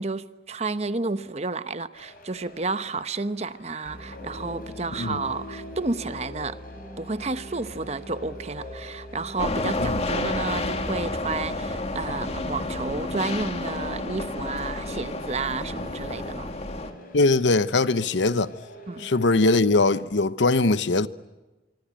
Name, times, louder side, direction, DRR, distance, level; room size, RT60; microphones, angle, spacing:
voice 1, 0.0-6.6 7.0-16.5 18.9-19.1, right 3 dB, 35° right, 1.0 m, -31 dB
sound 1, 1.9-20.0, left 2 dB, 50° left, 7.1 m, -42 dB
sound 2, 9.4-16.9, left 2 dB, 35° left, 2.1 m, -30 dB
voice 2, 17.1-18.5 19.0-21.1, left 3 dB, 90° left, 0.9 m, -21 dB
25.5 x 25.0 x 9.0 m
head